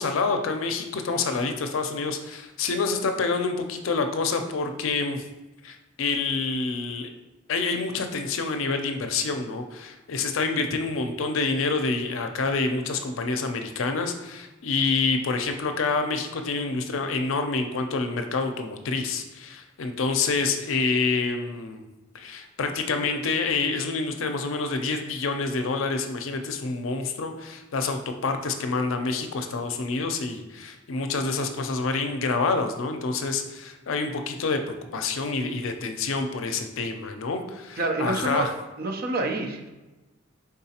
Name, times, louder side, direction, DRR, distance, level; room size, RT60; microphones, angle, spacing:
voice 1, 0.0-5.2 5.6-7.1 7.5-21.8 22.1-34.6 34.9-38.5, left 4 dB, 75° left, 6 dB, 0.5 m, -27 dB
voice 2, 37.8-38.5 38.8-39.7, right 2 dB, 50° right, 4 dB, 0.5 m, -27 dB
4.7 x 3.7 x 2.8 m, 1.1 s
head